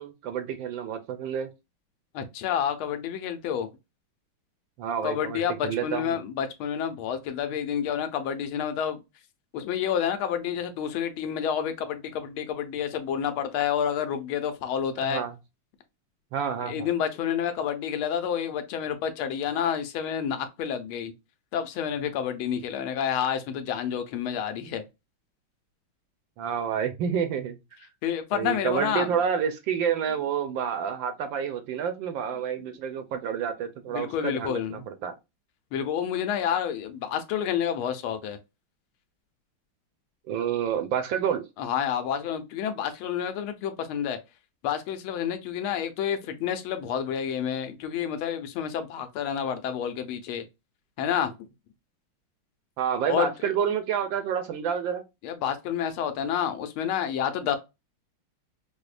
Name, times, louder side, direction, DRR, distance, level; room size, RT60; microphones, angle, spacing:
voice 1, 0.0-1.5 4.8-6.2 15.0-15.3 16.3-16.9 26.4-27.6 28.3-35.1 40.3-41.5 52.8-55.0, right 8 dB, 75° right, 1.2 m, -29 dB
voice 2, 2.1-3.7 5.0-9.0 9.5-15.2 16.7-21.1 21.5-24.8 28.0-29.1 33.9-34.8 35.7-38.4 41.6-44.2 44.6-50.4 51.0-51.4 53.1-53.3 55.2-57.6, left 8 dB, 80° left, 1.5 m, -29 dB
5.1 x 2.1 x 2.4 m
omnidirectional pair, 2.3 m